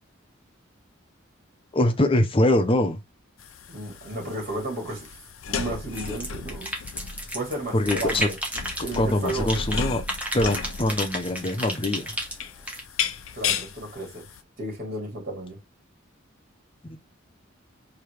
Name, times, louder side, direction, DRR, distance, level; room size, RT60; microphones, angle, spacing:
voice 1, 1.7-3.0 7.7-8.3 9.0-10.0 10.3-12.1 16.9-17.0, left 1 dB, 25° left, 0.7 m, -23 dB
sound 1, 3.4-14.4, left 6 dB, 90° left, 0.6 m, -34 dB
voice 2, 3.7-5.1 5.5-6.7 7.3-8.4 8.8-9.5 13.3-14.3 14.6-15.6, right 1 dB, 50° right, 2.9 m, -33 dB
sound 2, 5.9-7.5 7.9-9.8 10.1-12.8, equal, 10° right, 1.1 m, -32 dB
4.8 x 2.9 x 3.3 m
head